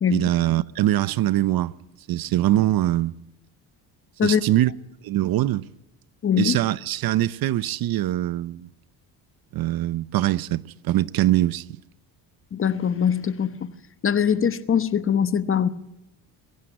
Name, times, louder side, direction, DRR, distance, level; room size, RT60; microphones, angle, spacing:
voice 1, 0.1-1.7 2.1-3.2 4.2-4.7 5.0-5.7 6.4-8.7 9.5-11.8, right 14 dB, 60° right, 0.7 m, -23 dB
voice 2, 6.2-6.6 12.5-13.6 14.0-15.7, left 8 dB, 30° left, 1.0 m, -22 dB
23.0 x 15.5 x 9.0 m
cardioid pair, 120°, 41 cm